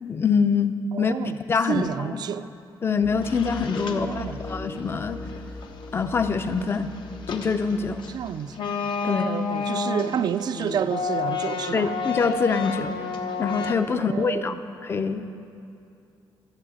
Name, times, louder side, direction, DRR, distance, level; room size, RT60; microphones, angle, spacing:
voice 1, 0.0-1.1 1.5-2.2 2.8-5.2 5.9-6.9 7.3-8.1 9.0-9.3 11.7-13.0 13.4-15.2, left 5 dB, 30° left, 0.5 m, -25 dB
voice 2, 0.9-1.4 1.7-2.5 3.9-4.4 8.1-8.7 9.0-11.9 13.9-14.6, right 8 dB, 55° right, 0.4 m, -30 dB
sound 1, 3.0-8.3, left 2 dB, 55° left, 1.6 m, -39 dB
sound 2, 3.2-4.9 5.2-13.8, left 5 dB, 70° left, 0.9 m, -31 dB
13.0 x 7.2 x 8.6 m
wide cardioid pair, 165°, 8 cm